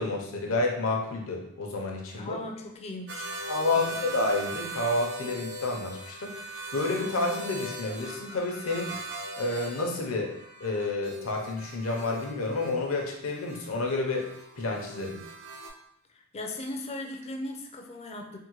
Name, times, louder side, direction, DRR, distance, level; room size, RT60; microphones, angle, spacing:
voice 1, 0.0-2.4 3.5-6.3 6.7-9.0 9.4-10.3 10.6-14.3 14.6-15.2, left 2 dB, 75° left, 1 dB, 0.7 m, -29 dB
voice 2, 2.1-3.4 3.7-4.1 16.1-18.4, left 2 dB, 30° left, 3 dB, 0.4 m, -38 dB
sound 1, 3.1-15.7, right 1 dB, 55° right, 0.6 m, -40 dB
3.6 x 2.1 x 3.0 m, 0.77 s
head